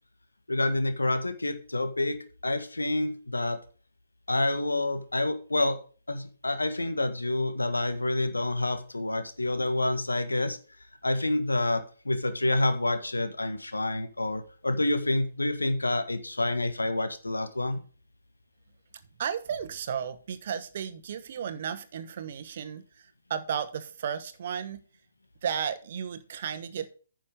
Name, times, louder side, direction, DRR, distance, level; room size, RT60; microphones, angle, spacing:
voice 1, 0.5-3.6 4.3-5.8 6.1-10.6 11.0-17.8, left 2 dB, 85° left, 9 dB, 1.6 m, -28 dB
voice 2, 19.2-24.8 25.4-26.9, right 8 dB, 50° right, 10 dB, 1.2 m, -34 dB
9.8 x 6.3 x 5.3 m, 0.40 s
figure-of-eight pair, 135°, 0 cm